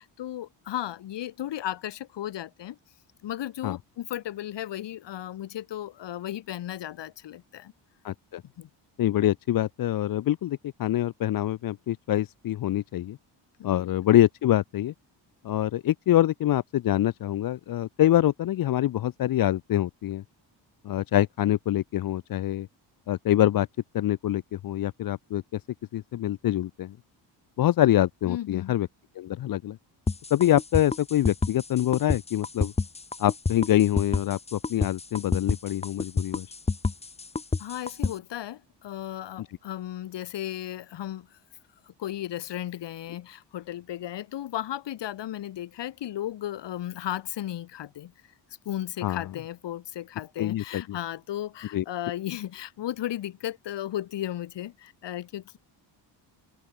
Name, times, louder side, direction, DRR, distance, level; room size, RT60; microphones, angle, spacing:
voice 1, 0.0-2.8 3.2-7.7 8.6-8.7 13.6-13.9 28.3-28.7 37.6-41.3 41.9-48.1 48.6-55.6, left 12 dB, 70° left, 4.5 m, -35 dB
voice 2, 8.0-8.4 9.0-13.2 13.6-14.9 15.4-20.2 20.8-22.7 23.1-23.7 23.9-25.6 25.9-27.0 27.6-28.9 29.2-29.8 30.3-32.7 33.2-36.5 39.4-39.5 49.0-49.2 50.4-51.0 51.7-51.8, left 13 dB, 50° left, 0.8 m, -25 dB
sound 1, 30.1-38.1, left 4 dB, 15° left, 1.0 m, -28 dB
open air
cardioid pair, 155°, 44 cm